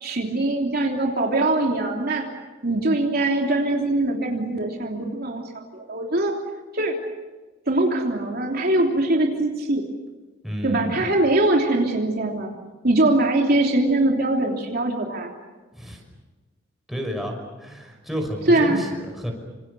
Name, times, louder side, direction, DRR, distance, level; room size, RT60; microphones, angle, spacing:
voice 1, 0.0-2.3 2.6-6.3 6.7-7.0 7.7-9.8 10.6-12.5 12.8-15.3 18.5-18.8, right 2 dB, 50° right, 1 dB, 3.2 m, -22 dB
voice 2, 10.4-11.0 15.7-16.0 16.9-19.3, equal, ahead, 2 dB, 5.9 m, -31 dB
27.5 x 26.5 x 6.9 m, 1.2 s
head